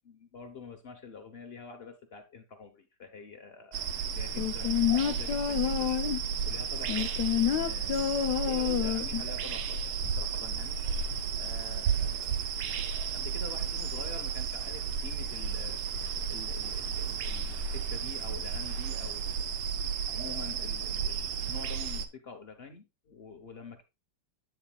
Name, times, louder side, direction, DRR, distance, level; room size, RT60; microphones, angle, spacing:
voice 1, 0.1-6.0 6.4-9.9 10.2-10.8 11.3-15.8 16.3-19.5 20.0-23.8, left 5 dB, 50° left, 0.7 m, -47 dB
sound 1, 3.7-22.1, right 6 dB, 75° right, 1.6 m, -33 dB
sound 2, 4.4-6.3 6.9-9.3 9.6-9.7, left 10 dB, 70° left, 1.0 m, -28 dB
9.1 x 7.9 x 2.3 m
omnidirectional pair, 2.4 m